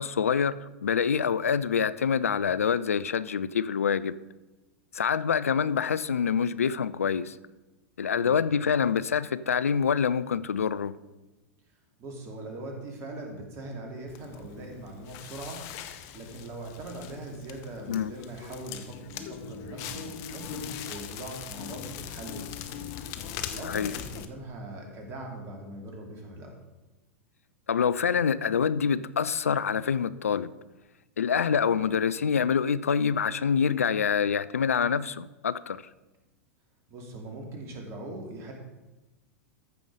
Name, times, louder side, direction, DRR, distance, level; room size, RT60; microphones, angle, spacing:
voice 1, 0.0-4.2 4.9-7.4 8.0-11.0 17.9-18.1 23.6-24.0 27.7-30.5 31.2-35.8, left 7 dB, 80° left, 17 dB, 0.4 m, -26 dB
voice 2, 12.0-15.6 16.1-22.9 23.5-26.5 36.9-38.5, right 2 dB, 35° right, 1 dB, 2.6 m, -41 dB
Crackle, 14.1-24.2, left 9 dB, 45° left, 0.9 m, -40 dB
14.0 x 5.4 x 4.9 m, 1.1 s
figure-of-eight pair, 95°, 8 cm